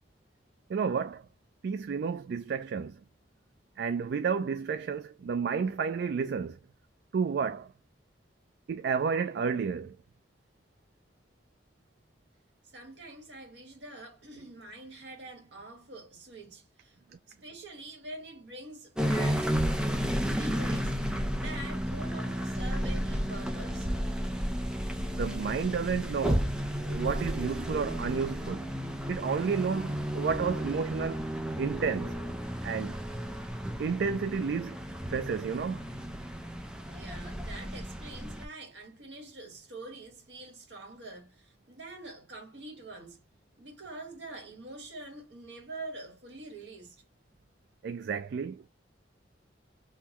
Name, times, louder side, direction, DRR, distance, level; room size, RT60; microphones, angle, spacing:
voice 1, 0.7-1.3 1.6-3.0 3.8-6.6 7.1-7.7 8.7-10.0 25.1-26.6 26.8-28.7 29.1-31.2 31.6-32.2 32.6-33.0 33.8-34.8 35.1-35.9 47.8-48.6, right 6 dB, 65° right, 0.3 m, -31 dB
voice 2, 12.7-17.0 17.3-19.6 20.3-21.0 21.3-24.0 36.9-43.2 43.6-47.0, right 2 dB, 80° right, 1.5 m, -45 dB
sound 1, 19.0-38.5, equal, 5° right, 0.5 m, -33 dB
3.7 x 2.2 x 2.9 m
head